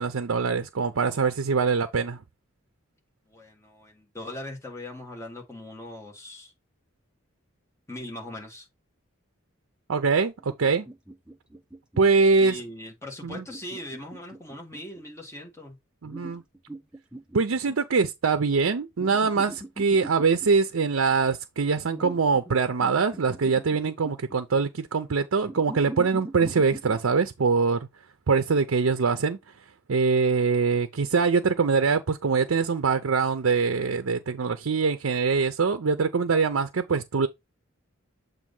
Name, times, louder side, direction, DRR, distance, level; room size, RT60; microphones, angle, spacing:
voice 1, 0.0-2.2 9.9-10.9 12.0-12.6 13.2-13.4 16.0-16.4 17.3-27.9 28.3-37.3, right 5 dB, 80° right, 0.6 m, -23 dB
voice 2, 3.3-6.5 7.9-8.7 12.4-15.8, left 1 dB, 15° left, 1.7 m, -40 dB
sound 1, 10.4-12.2 13.3-15.0 16.0-18.0 19.0-20.5 21.9-22.5 22.8-24.4 25.4-27.0, right 1 dB, 5° right, 0.7 m, -42 dB
7.5 x 2.6 x 5.3 m
head